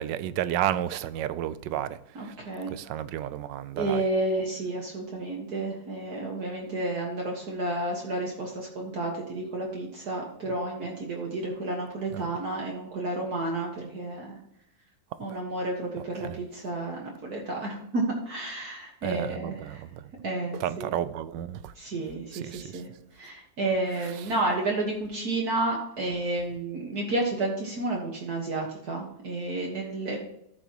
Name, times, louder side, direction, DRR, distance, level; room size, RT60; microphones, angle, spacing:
voice 1, 0.0-2.3 2.7-4.0 12.1-12.2 15.3-15.4 16.2-16.4 19.0-20.1 20.6-21.7 22.3-22.8, right 11 dB, 75° right, 1.2 m, -32 dB
voice 2, 2.2-2.7 3.7-14.4 15.2-19.8 20.2-21.0 21.8-30.2, right 2 dB, 55° right, 2.0 m, -31 dB
14.0 x 6.6 x 3.0 m
omnidirectional pair, 2.0 m